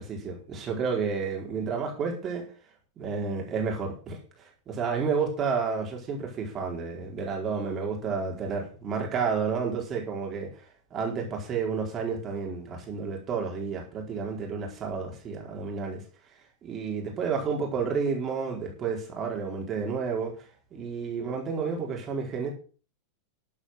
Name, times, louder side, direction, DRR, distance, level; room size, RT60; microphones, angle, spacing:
voice 1, 0.0-2.4 3.0-10.5 10.9-16.0 16.6-20.4 20.7-22.5, right 5 dB, 30° right, 0 dB, 4.4 m, -31 dB
12.5 x 8.8 x 5.8 m, 0.38 s
figure-of-eight pair, 90°, 0 cm